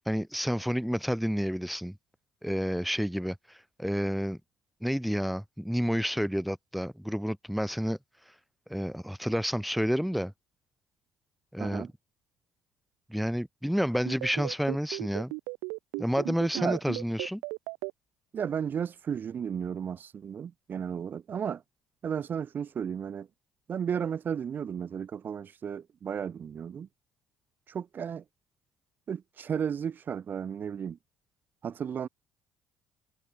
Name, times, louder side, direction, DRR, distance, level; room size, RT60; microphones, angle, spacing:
voice 1, 0.1-2.0 2.4-3.4 3.8-4.4 4.8-8.0 8.7-10.3 11.5-11.9 13.1-15.3 16.0-17.4, equal, ahead, 1.2 m, -29 dB
voice 2, 11.6-11.9 16.5-16.8 18.3-21.6 22.0-23.3 23.7-26.9 27.7-28.2 29.1-31.0 31.6-32.1, right 7 dB, 45° right, 2.2 m, -34 dB
sound 1, 14.1-17.9, right 33 dB, 85° right, 0.8 m, -35 dB
supercardioid pair, 75°, 4 cm